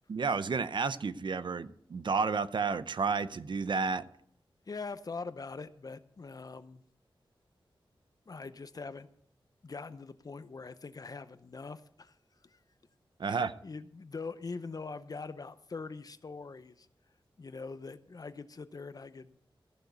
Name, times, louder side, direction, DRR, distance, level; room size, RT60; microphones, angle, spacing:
voice 1, 0.1-4.0 13.2-13.5, right 5 dB, 60° right, 0.6 m, -31 dB
voice 2, 4.7-6.8 8.3-9.1 9.6-12.2 12.4-12.6 13.2-16.9 17.4-19.4, left 4 dB, 45° left, 0.7 m, -43 dB
14.5 x 6.5 x 8.0 m
wide cardioid pair, 120°, 9 cm